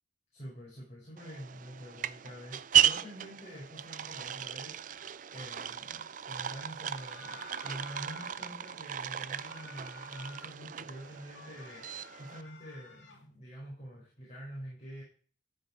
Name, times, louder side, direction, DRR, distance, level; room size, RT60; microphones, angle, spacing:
voice 1, 0.3-15.0, equal, 35° left, -6 dB, 5.6 m, -46 dB
sound 1, 1.2-12.4, right 10 dB, 40° right, 0.4 m, -34 dB
sound 2, 6.8-8.5 9.2-10.5 10.9-13.2, left 4 dB, 70° left, 2.3 m, -52 dB
14.0 x 5.9 x 4.9 m, 0.42 s
head